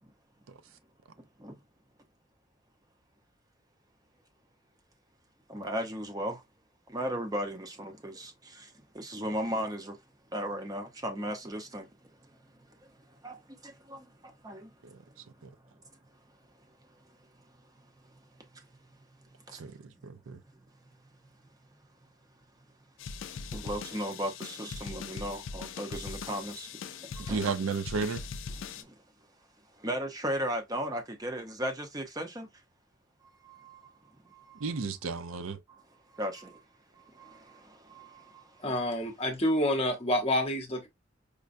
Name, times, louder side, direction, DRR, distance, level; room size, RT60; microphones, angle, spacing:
voice 1, 5.5-6.4 6.9-10.0 10.3-11.9 12.8-12.9 13.2-14.7 18.5-18.7 19.5-19.6 23.5-27.5 28.6-28.9 29.8-32.5 33.2-34.7 35.7-35.8 36.1-36.6 37.0-38.6, equal, 20° right, 0.6 m, -37 dB
voice 2, 19.6-20.4 27.3-28.3 34.6-35.6, right 4 dB, 85° right, 0.5 m, -33 dB
sound 1, 23.0-28.8, left 5 dB, 70° left, 0.4 m, -41 dB
voice 3, 38.6-40.9, left 1 dB, 30° left, 0.8 m, -28 dB
5.0 x 2.2 x 2.5 m
head